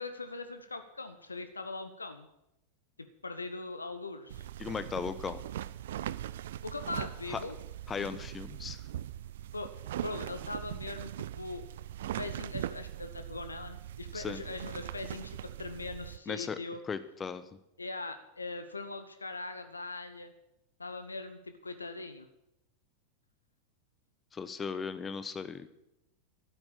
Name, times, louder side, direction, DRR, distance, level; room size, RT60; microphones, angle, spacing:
voice 1, 0.0-2.3 3.0-4.5 6.6-7.6 9.5-9.7 10.0-11.7 12.2-16.8 17.8-20.3 20.8-22.3, left 3 dB, 80° left, 9 dB, 1.0 m, -41 dB
sound 1, 4.3-16.2, right 12 dB, 60° right, 0.5 m, -41 dB
voice 2, 4.6-5.4 7.3-7.4 7.9-8.8 14.1-14.4 16.3-16.6 16.9-17.4 24.3-25.7, left 6 dB, 20° left, 12 dB, 1.0 m, -37 dB
12.5 x 9.1 x 7.6 m, 0.86 s
figure-of-eight pair, 90°, 0 cm